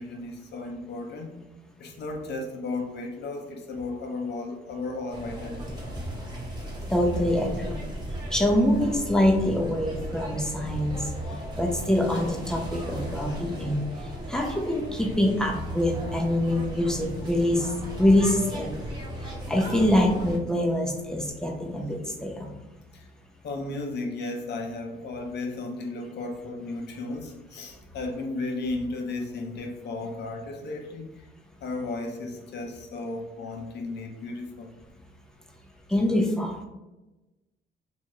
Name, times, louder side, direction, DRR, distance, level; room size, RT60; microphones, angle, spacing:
voice 1, 0.0-1.4 1.8-5.8 22.9-23.1 23.4-31.3 31.6-34.7, left 2 dB, 60° left, 3 dB, 0.6 m, -34 dB
sound 1, 5.1-20.4, right 1 dB, 20° right, 0.9 m, -36 dB
voice 2, 6.9-7.9 8.3-11.1 11.6-18.7 19.2-22.5 35.9-36.7, left 1 dB, 5° left, 1 dB, 0.5 m, -25 dB
2.6 x 2.3 x 2.9 m, 1.1 s
cardioid pair, 90°, 20 cm